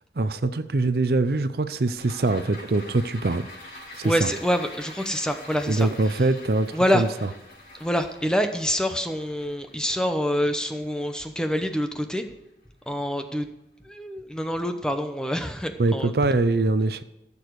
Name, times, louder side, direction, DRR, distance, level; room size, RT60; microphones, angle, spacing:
voice 1, 0.2-3.4 4.0-4.3 5.7-7.1 15.8-17.0, right 2 dB, 60° right, 0.6 m, -23 dB
sound 1, 2.0-12.5 12.8-12.9, left 1 dB, 45° left, 4.5 m, -45 dB
voice 2, 4.0-6.3 6.7-7.0 7.7-12.2 12.9-13.5 13.8-16.1, equal, 5° left, 0.8 m, -26 dB
15.0 x 7.0 x 4.8 m
head